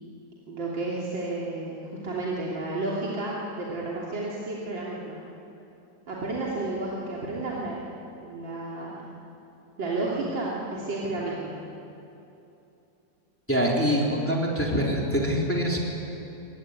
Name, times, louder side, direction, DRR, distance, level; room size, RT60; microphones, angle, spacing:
voice 1, 0.5-5.2 6.1-7.8 8.2-9.0 9.8-11.6, right 2 dB, 85° right, -5 dB, 3.8 m, -31 dB
voice 2, 13.5-15.8, equal, 5° left, -3 dB, 3.6 m, -24 dB
24.0 x 21.5 x 9.7 m, 2.8 s
omnidirectional pair, 2.0 m